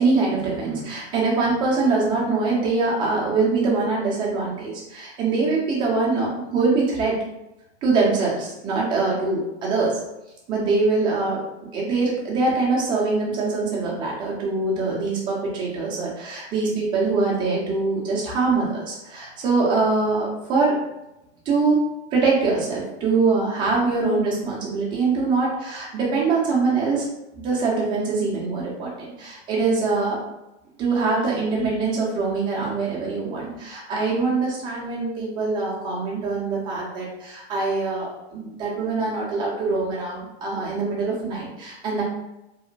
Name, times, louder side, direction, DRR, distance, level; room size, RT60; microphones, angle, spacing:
voice 1, 0.0-7.1 7.8-10.0 10.5-11.4 11.7-20.7 21.5-21.8 22.1-27.0 27.3-30.2 30.8-42.0, right 3 dB, 15° right, -5 dB, 0.5 m, -23 dB
2.9 x 2.1 x 2.5 m, 0.91 s
hypercardioid pair, 145°, 34 cm